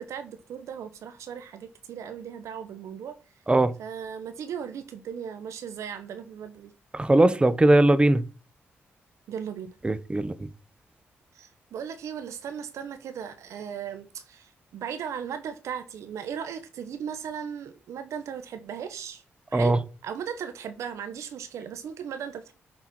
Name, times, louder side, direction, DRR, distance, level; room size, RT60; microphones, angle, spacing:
voice 1, 0.0-3.2 3.8-6.7 9.3-9.7 11.3-19.2 19.5-19.7 20.0-22.5, right 8 dB, 80° right, 1.1 m, -37 dB
voice 2, 6.9-8.2 9.8-10.3 19.5-19.8, right 2 dB, 20° right, 1.0 m, -20 dB
9.5 x 4.5 x 6.1 m
supercardioid pair, 60°, 5 cm